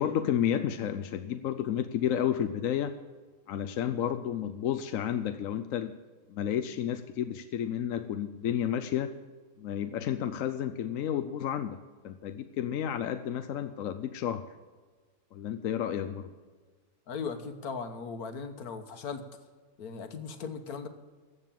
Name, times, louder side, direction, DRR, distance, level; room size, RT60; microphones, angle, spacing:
voice 1, 0.0-2.9 3.5-5.9 6.3-9.1 9.6-11.8 12.0-14.4 15.3-16.3, left 10 dB, 70° left, 9 dB, 1.0 m, -31 dB
voice 2, 17.1-19.2 19.8-20.9, left 5 dB, 90° left, 9 dB, 1.7 m, -38 dB
14.0 x 8.2 x 7.5 m, 1.4 s
omnidirectional pair, 1.6 m